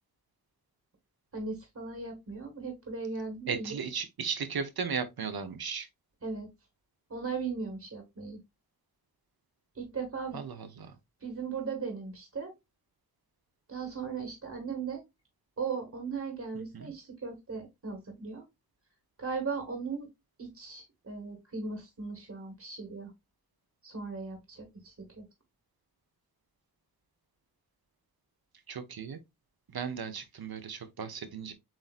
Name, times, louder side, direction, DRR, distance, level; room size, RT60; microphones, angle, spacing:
voice 1, 1.3-3.8 6.2-6.5 7.1-8.4 9.7-10.4 11.2-12.5 13.7-15.0 15.6-18.4 19.2-20.1 20.4-23.1 23.8-25.2, right 5 dB, 45° right, 1.6 m, -37 dB
voice 2, 3.5-5.9 10.3-10.9 16.7-16.9 28.7-29.2 29.7-31.5, right 6 dB, 75° right, 0.9 m, -36 dB
7.5 x 2.7 x 2.4 m
wide cardioid pair, 100°, 37 cm